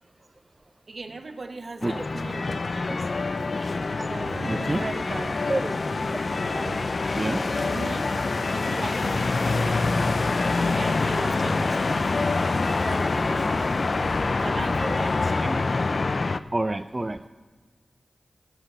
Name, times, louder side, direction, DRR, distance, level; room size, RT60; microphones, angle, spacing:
voice 1, 0.9-3.1 3.4-5.4 6.5-6.9 7.5-8.1 8.5-9.8 10.6-13.5 14.3-15.2, right 3 dB, 60° right, 6 dB, 1.1 m, -38 dB
sound 1, 1.8-16.4, left 3 dB, 60° left, 0.4 m, -25 dB
sound 2, 2.9-15.7, left 1 dB, 45° left, 2.3 m, -51 dB
sound 3, 4.2-13.8, right 5 dB, 90° right, 0.5 m, -45 dB
voice 2, 4.4-4.8 5.5-5.7 6.2-6.3 7.1-7.4 8.7-8.8 14.8-15.6 16.5-17.3, right 2 dB, 30° right, 7 dB, 0.4 m, -29 dB
15.0 x 5.9 x 6.7 m, 1.4 s
cardioid pair, 50°, 0 cm